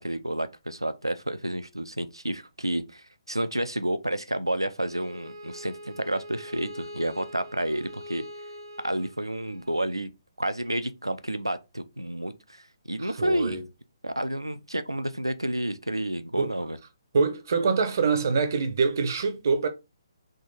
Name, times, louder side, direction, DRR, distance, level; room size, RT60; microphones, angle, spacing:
voice 1, 0.0-8.2 8.8-10.1 10.4-13.6 14.0-16.8, right 1 dB, 85° right, 0.4 m, -30 dB
Bowed string instrument, 4.8-9.8, equal, 70° right, 1.1 m, -43 dB
voice 2, 13.0-13.6 16.4-16.5 17.1-19.7, right 4 dB, 45° right, 0.7 m, -25 dB
3.7 x 2.5 x 4.0 m
figure-of-eight pair, 135°, 2 cm